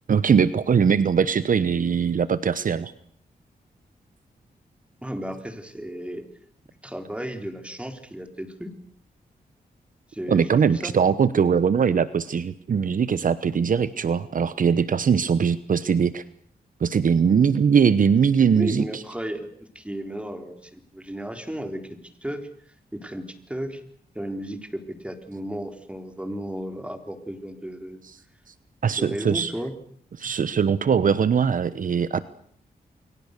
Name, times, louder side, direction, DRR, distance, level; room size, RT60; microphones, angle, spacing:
voice 1, 0.1-2.9 10.3-16.2 16.8-19.0 28.8-29.5 30.2-32.3, right 6 dB, 60° right, 15 dB, 1.0 m, -21 dB
voice 2, 5.0-6.2 6.8-8.7 10.1-10.9 18.5-19.5 19.7-21.8 22.2-22.5 22.9-23.8 24.1-28.0 28.9-29.7, right 1 dB, 5° right, 6 dB, 4.0 m, -34 dB
29.5 x 23.0 x 6.7 m, 0.62 s
wide cardioid pair, 100°, 16 cm